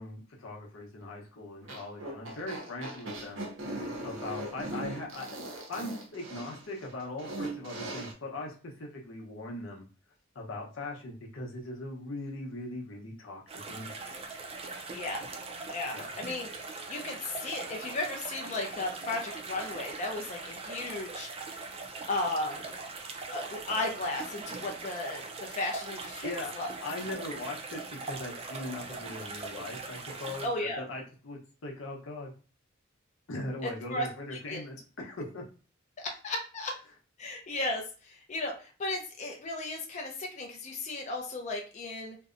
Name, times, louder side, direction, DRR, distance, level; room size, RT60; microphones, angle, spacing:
voice 1, 0.0-3.5 4.0-5.4 5.7-9.9 10.3-14.2 15.9-16.2 26.2-32.3 33.3-35.4, left 2 dB, 85° left, 0 dB, 0.7 m, -40 dB
sound 1, 1.6-8.1, right 1 dB, 70° right, 0.7 m, -39 dB
sound 2, 13.5-30.5, right 3 dB, 30° right, 0.4 m, -41 dB
voice 2, 14.9-15.2 15.7-21.3 22.1-22.6 23.3-26.7 30.4-30.8 33.6-34.6 36.0-36.7 37.2-42.2, left 2 dB, 35° left, 2 dB, 0.4 m, -35 dB
2.6 x 2.0 x 2.4 m, 0.37 s
head